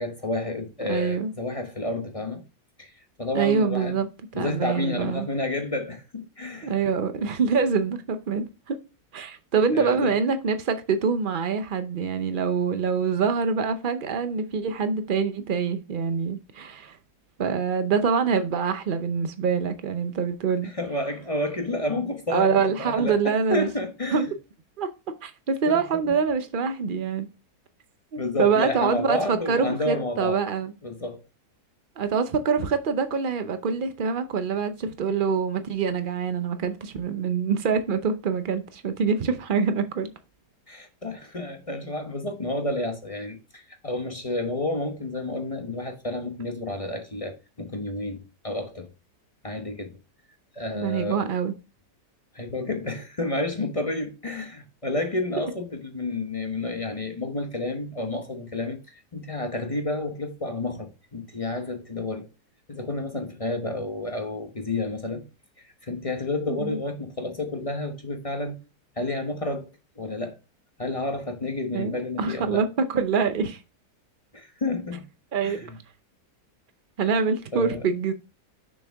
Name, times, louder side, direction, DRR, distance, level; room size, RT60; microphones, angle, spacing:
voice 1, 0.0-2.4 2.8-2.9 3.2-4.0 4.3-6.7 9.7-10.1 20.6-24.2 25.7-25.8 28.2-30.4 30.8-31.2 40.7-48.9 49.4-49.9 50.5-51.3 52.3-62.3 62.7-65.2 65.8-68.6 69.0-69.7 70.0-70.4 70.8-72.6 74.3-75.0 75.4-75.8 77.5-77.9, left 2 dB, 30° left, 0.6 m, -30 dB
voice 2, 0.9-1.3 3.3-4.1 4.3-5.3 6.6-8.8 9.1-17.0 17.4-20.7 22.3-23.7 24.1-24.3 24.8-24.9 25.2-27.3 28.1-30.7 32.0-40.1 50.7-51.5 66.5-66.8 71.7-72.7 72.9-73.6 75.3-75.7 77.0-78.1, right 5 dB, 75° right, 0.4 m, -25 dB
6.4 x 6.4 x 3.4 m
omnidirectional pair, 1.8 m